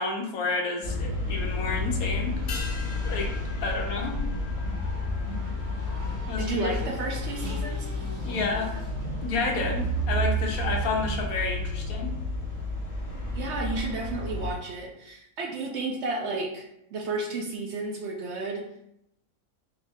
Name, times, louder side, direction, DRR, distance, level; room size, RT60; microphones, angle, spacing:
voice 1, 0.0-2.7 3.0-3.3 3.6-4.2 6.3-6.7 8.2-8.8 9.2-12.1, left 3 dB, 80° left, 1 dB, 1.2 m, -30 dB
sound 1, 0.8-14.5, left 1 dB, 30° left, 0.9 m, -31 dB
Race car auto racing, 1.7-11.3, equal, 80° right, 1.7 m, -40 dB
sound 2, 2.5-7.2 7.5-7.6, left 4 dB, 55° left, 0.6 m, -44 dB
voice 2, 6.4-7.9 13.3-16.7 16.9-18.6, right 3 dB, 65° right, 1 dB, 0.7 m, -32 dB
3.9 x 2.7 x 3.3 m, 0.81 s
omnidirectional pair, 1.5 m